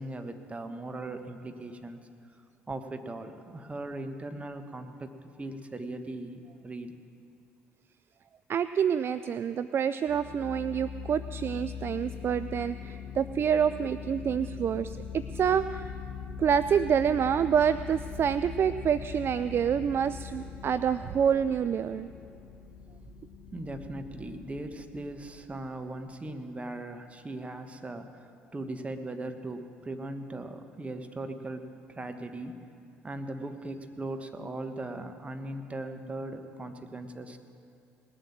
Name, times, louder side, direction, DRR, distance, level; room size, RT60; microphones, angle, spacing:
voice 1, 0.0-2.0 2.7-7.0 12.8-13.1 15.5-15.6 23.5-32.6 33.0-37.4, right 2 dB, 25° right, 7 dB, 1.3 m, -39 dB
voice 2, 8.5-15.0 15.3-15.8 16.4-22.1, right 8 dB, 45° right, 13 dB, 0.4 m, -27 dB
sound 1, 10.1-26.3, left 7 dB, 45° left, 1.7 m, -42 dB
19.5 x 7.7 x 7.4 m, 2.5 s
hypercardioid pair, 55°, 6 cm